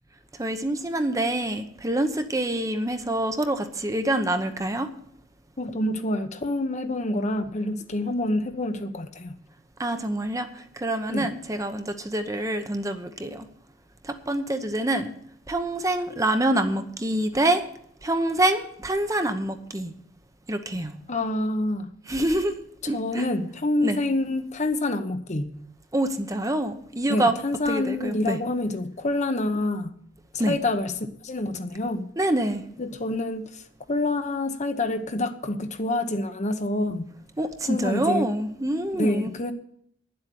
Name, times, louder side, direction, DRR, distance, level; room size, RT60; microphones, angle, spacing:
voice 1, 0.4-4.9 9.8-13.5 14.0-15.1 15.5-17.6 18.0-19.9 20.5-21.0 22.1-22.6 22.9-23.2 23.8-24.0 25.9-27.4 27.7-28.4 30.4-30.6 32.2-32.6 37.4-39.3, right 1 dB, 15° right, 0.9 m, -26 dB
voice 2, 5.6-9.3 11.1-11.3 21.1-21.9 22.9-25.5 27.1-30.0 30.3-30.9 31.2-32.1 32.8-33.6 33.9-37.1 37.7-38.3 38.9-39.5, left 2 dB, 35° left, 1.0 m, -27 dB
10.5 x 7.8 x 8.5 m
head